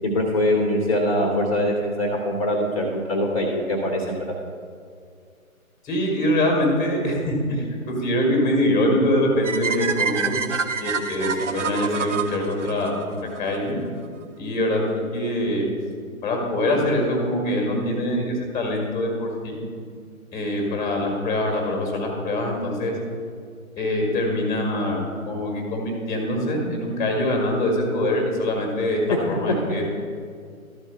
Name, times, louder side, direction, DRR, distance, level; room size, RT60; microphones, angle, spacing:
voice 1, 0.0-4.2, left 1 dB, 25° left, 1 dB, 0.8 m, -23 dB
voice 2, 5.8-10.3 10.8-13.8 14.4-15.6 16.2-19.6 20.3-22.9 23.8-29.0 29.3-29.9, left 1 dB, 10° left, 1 dB, 1.1 m, -24 dB
sound 1, 9.4-13.6, right 6 dB, 55° right, 0.7 m, -27 dB
12.5 x 4.4 x 7.1 m, 2.2 s
figure-of-eight pair, 145°, 43 cm